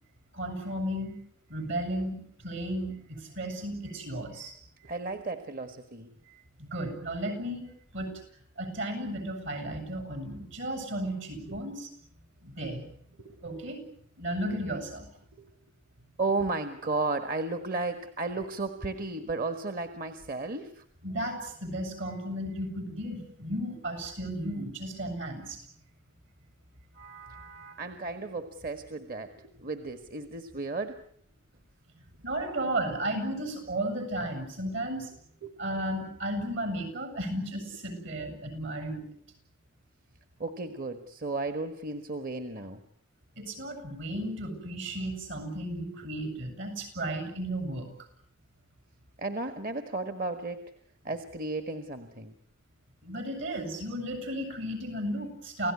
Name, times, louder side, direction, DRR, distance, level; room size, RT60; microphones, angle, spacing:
voice 1, 0.3-1.1 1.5-4.6 6.6-7.7 7.9-8.1 8.6-11.9 12.4-12.8 13.4-13.8 14.2-15.1 21.0-25.6 27.0-27.8 32.2-35.1 35.6-39.0 43.4-47.9 53.0-55.7, right 1 dB, 65° right, 8 dB, 8.0 m, -34 dB
voice 2, 4.8-6.1 11.5-11.6 13.2-13.4 15.4-15.5 16.2-20.8 27.8-31.0 35.4-35.6 40.4-42.8 49.2-50.7 51.0-52.3, right 3 dB, 45° right, 9 dB, 1.6 m, -34 dB
29.0 x 17.0 x 9.8 m, 0.66 s
head